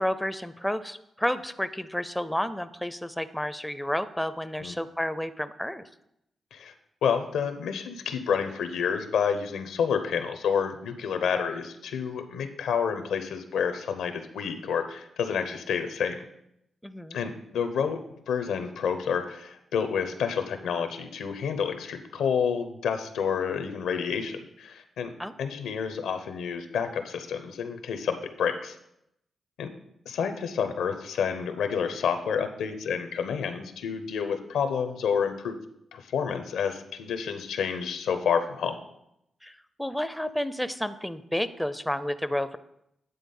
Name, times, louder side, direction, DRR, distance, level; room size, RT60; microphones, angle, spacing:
voice 1, 0.0-5.8 16.8-17.2 25.2-25.4 39.4-42.6, left 1 dB, 5° left, 13 dB, 0.5 m, -31 dB
voice 2, 7.0-16.2 17.1-18.0 18.3-25.1 25.4-28.8 29.6-29.7 30.1-35.5 35.9-38.8, left 7 dB, 90° left, 8 dB, 0.7 m, -29 dB
9.4 x 3.6 x 5.4 m, 0.78 s
supercardioid pair, 55°, 0 cm